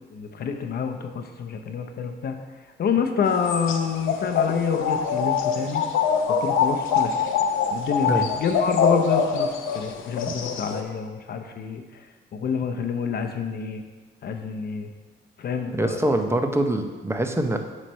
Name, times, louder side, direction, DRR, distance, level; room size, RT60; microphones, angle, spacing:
voice 1, 0.1-2.4 2.8-5.8 6.4-7.1 7.7-11.8 12.3-13.8 14.2-14.9 15.4-16.2, left 6 dB, 50° left, 6 dB, 0.7 m, -27 dB
sound 1, 3.2-10.8, left 6 dB, 85° left, 0.7 m, -24 dB
voice 2, 15.7-17.6, right 1 dB, 15° right, 5 dB, 0.6 m, -24 dB
7.4 x 3.3 x 5.4 m, 1.4 s
cardioid pair, 90°, 20 cm